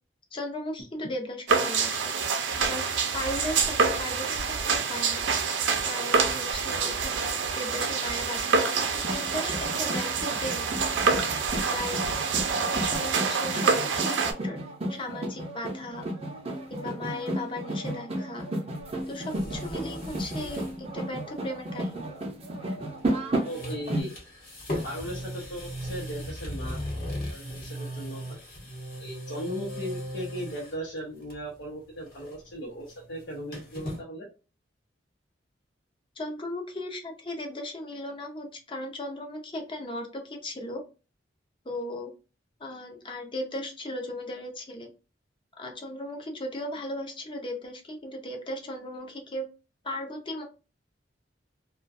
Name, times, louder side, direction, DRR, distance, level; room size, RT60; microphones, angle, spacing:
voice 1, 0.3-2.1 2.6-5.3 5.8-10.7 11.5-12.3 12.7-14.6 14.9-16.1 16.7-18.5 19.1-20.6 20.9-22.1 36.2-40.8 41.6-42.1 42.6-44.9 45.6-49.5 49.8-50.4, left 1 dB, 30° left, 2 dB, 0.6 m, -37 dB
sound 1, 1.5-14.3, right 5 dB, 85° right, 0.5 m, -27 dB
sound 2, 9.0-24.0, right 1 dB, 35° right, 0.6 m, -33 dB
sound 3, 18.8-20.8 21.1-21.2 22.9-23.1 23.4-30.8 31.2-31.6 31.9-34.0, equal, 50° left, 1.1 m, -38 dB
voice 2, 23.5-24.2 24.8-26.8 27.3-28.4 29.0-34.3, equal, 80° left, -4 dB, 0.7 m, -37 dB
2.3 x 2.2 x 2.5 m, 0.33 s
head